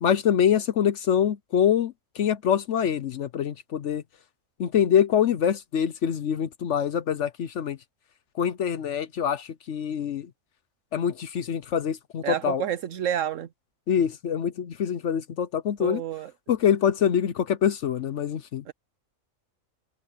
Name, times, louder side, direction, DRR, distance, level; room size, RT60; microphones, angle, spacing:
voice 1, 0.0-4.0 4.6-7.8 8.4-10.3 10.9-12.6 13.9-16.0 16.5-18.6, left 8 dB, 65° left, 1.0 m, -25 dB
voice 2, 12.2-13.5 15.8-16.3 18.7-18.8, right 10 dB, 70° right, 1.0 m, -29 dB
omnidirectional pair, 1.4 m